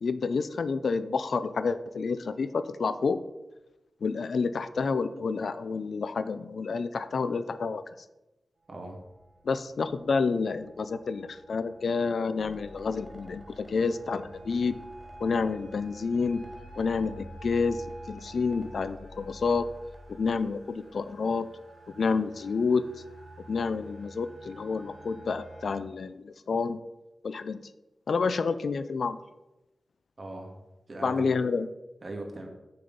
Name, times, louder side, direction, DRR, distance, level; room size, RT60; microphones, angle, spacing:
voice 1, 0.0-3.2 4.0-7.8 9.4-14.8 15.2-16.4 16.8-19.7 20.2-21.5 21.9-22.8 23.5-26.8 27.2-27.6 28.1-29.2 31.0-31.7, left 4 dB, 75° left, 13 dB, 0.5 m, -29 dB
sound 1, 8.6-25.7, right 2 dB, 60° right, 2.9 m, -50 dB
voice 2, 8.7-9.0 30.2-30.6 30.9-31.4 32.0-32.5, right 2 dB, 40° right, 2 dB, 1.9 m, -39 dB
sound 2, 12.4-21.0, equal, 15° right, 1.7 m, -51 dB
7.8 x 6.7 x 5.2 m, 1.0 s
wide cardioid pair, 95°, 0 cm